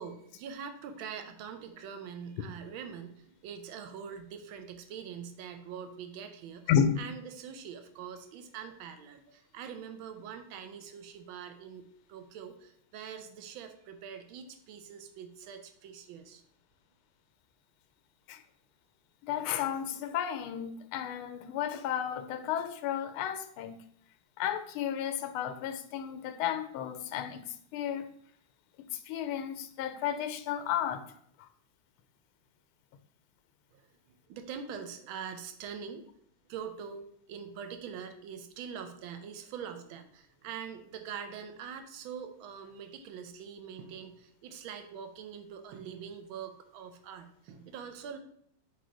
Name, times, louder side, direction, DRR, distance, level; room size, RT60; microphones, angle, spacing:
voice 1, 0.0-6.6 7.0-16.4 33.7-33.8 34.1-36.1 36.5-48.2, right 7 dB, 75° right, 1.5 m, -44 dB
voice 2, 6.7-7.0 18.3-18.4 19.2-23.7 24.4-27.4 27.7-28.1 28.8-31.1 31.4-31.5, left 9 dB, 90° left, 1.5 m, -32 dB
4.7 x 4.0 x 5.0 m
omnidirectional pair, 2.3 m